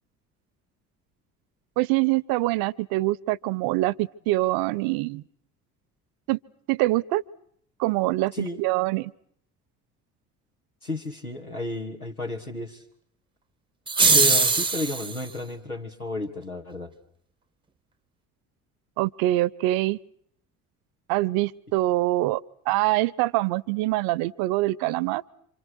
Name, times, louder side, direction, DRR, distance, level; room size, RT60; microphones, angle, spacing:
voice 1, 1.8-5.2 6.3-6.4 6.7-7.2 7.8-9.1 19.0-20.0 21.1-22.4 22.7-25.2, right 18 dB, 55° right, 22 dB, 1.0 m, -24 dB
voice 2, 10.8-12.8 14.1-16.9, left 2 dB, 90° left, 1 dB, 3.0 m, -32 dB
sound 1, 13.9-15.2, right 4 dB, 10° right, 1.0 m, -20 dB
28.0 x 26.5 x 6.5 m, 0.66 s
figure-of-eight pair, 55°, 43 cm